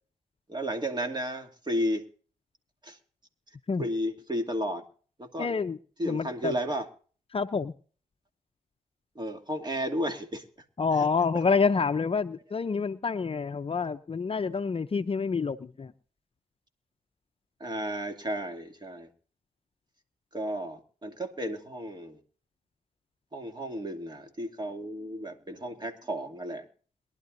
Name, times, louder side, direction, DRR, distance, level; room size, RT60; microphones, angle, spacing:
voice 1, 0.5-2.0 2.8-3.0 3.8-4.8 5.2-5.6 6.0-6.9 9.1-10.4 10.9-11.1 11.3-11.4 17.6-19.1 20.3-22.2 23.3-26.7, equal, 25° right, 5 dB, 2.6 m, -33 dB
voice 2, 5.4-5.8 6.0-6.5 7.3-7.7 10.8-15.9, left 5 dB, 35° left, 10 dB, 0.7 m, -27 dB
22.5 x 11.5 x 2.7 m, 0.42 s
supercardioid pair, 45°, 16 cm